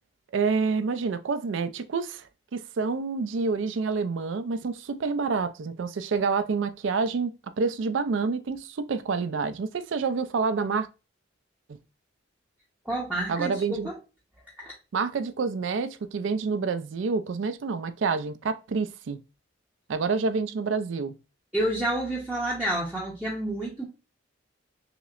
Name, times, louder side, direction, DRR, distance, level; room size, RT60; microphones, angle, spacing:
voice 1, 0.3-2.2 2.5-10.9 13.3-13.9 14.9-19.2 19.9-21.2, right 4 dB, 70° right, 0.4 m, -28 dB
voice 2, 12.8-14.0 14.6-14.7 21.5-23.8, right 1 dB, 5° right, 0.6 m, -29 dB
5.7 x 2.1 x 2.3 m
head